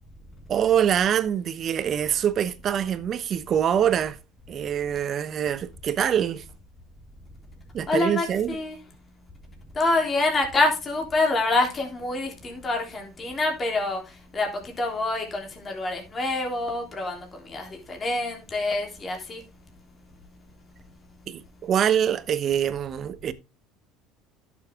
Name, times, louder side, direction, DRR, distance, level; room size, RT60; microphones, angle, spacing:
voice 1, 0.5-4.2 4.5-6.4 7.7-8.5 21.3-23.3, right 9 dB, 45° right, 1.0 m, -24 dB
voice 2, 7.9-8.8 9.7-19.4, left 2 dB, 30° left, 3.5 m, -26 dB
11.0 x 7.3 x 3.7 m
supercardioid pair, 100°, 0 cm